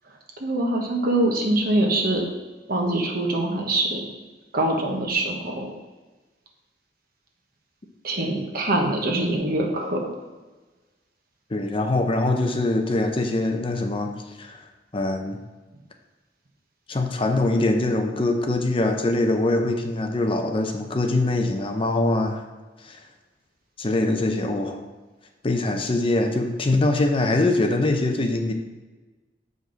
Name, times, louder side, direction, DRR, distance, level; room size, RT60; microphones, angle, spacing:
voice 1, 0.4-2.2 2.7-4.1 4.5-5.7 8.0-10.0, right 1 dB, 55° right, 1 dB, 1.2 m, -24 dB
voice 2, 11.5-14.6 14.9-15.4 16.9-22.4 22.8-23.0 23.8-24.8 25.4-28.5, left 2 dB, 30° left, 4 dB, 0.6 m, -23 dB
7.6 x 5.2 x 3.9 m, 1.2 s
head